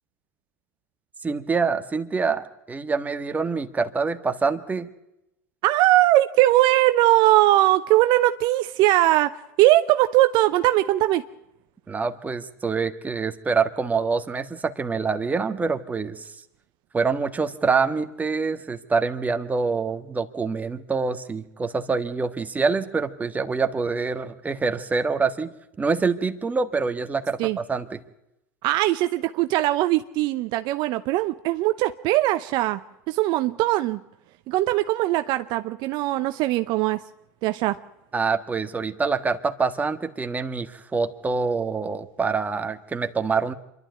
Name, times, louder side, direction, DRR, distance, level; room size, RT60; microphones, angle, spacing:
voice 1, 1.2-4.9 11.9-16.4 16.9-25.5 25.8-28.0 38.1-43.5, right 4 dB, 15° right, 8 dB, 1.7 m, -25 dB
voice 2, 5.6-11.2 27.4-27.6 28.6-32.8 33.1-34.0 34.5-37.0 37.4-37.8, right 16 dB, 55° right, 11 dB, 0.8 m, -20 dB
26.0 x 12.0 x 9.3 m, 0.89 s
hypercardioid pair, 95°, 9 cm